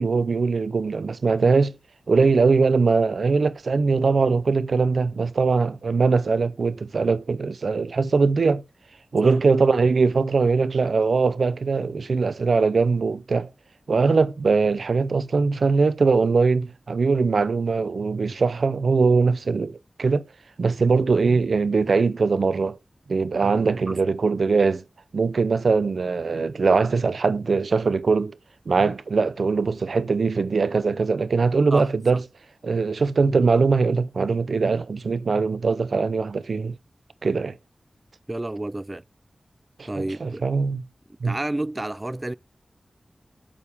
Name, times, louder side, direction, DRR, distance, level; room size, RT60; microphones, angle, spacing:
voice 1, 0.0-1.7 2.1-8.6 9.1-13.5 13.9-20.2 20.6-22.8 23.1-24.8 25.1-28.4 28.7-32.2 32.6-36.8 37.2-37.5 39.8-39.9 40.2-40.8 41.2-41.4, right 4 dB, 80° right, 0.6 m, -21 dB
voice 2, 31.7-32.2 38.3-39.0 39.9-40.4 41.2-42.3, right 1 dB, 30° right, 0.4 m, -30 dB
8.7 x 6.6 x 3.5 m
cardioid pair, 40°, 0 cm